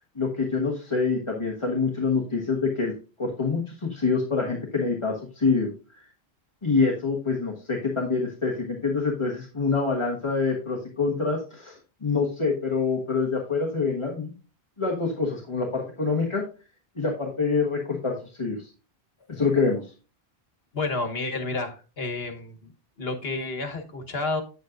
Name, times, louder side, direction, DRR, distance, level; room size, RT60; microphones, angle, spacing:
voice 1, 0.1-2.9 3.2-6.0 6.6-14.3 14.8-16.4 17.0-18.7 19.3-19.9, left 4 dB, 30° left, -2 dB, 1.4 m, -26 dB
voice 2, 20.7-22.7 23.0-24.4, left 3 dB, 75° left, 5 dB, 1.5 m, -30 dB
9.1 x 8.4 x 2.6 m, 0.34 s
omnidirectional pair, 1.0 m